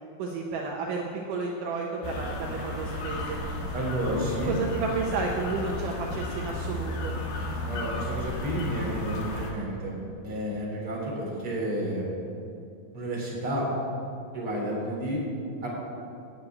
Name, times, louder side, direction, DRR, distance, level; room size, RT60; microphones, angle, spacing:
voice 1, 0.2-3.4 4.5-7.2, right 4 dB, 75° right, 0 dB, 2.5 m, -31 dB
sound 1, 2.0-9.5, left 1 dB, 90° left, 3.3 m, -33 dB
voice 2, 3.7-4.5 7.7-10.0 10.2-12.1 12.9-13.7 14.3-15.2 15.6-15.7, equal, 40° right, -4 dB, 4.0 m, -31 dB
11.5 x 7.6 x 9.1 m, 2.7 s
omnidirectional pair, 3.8 m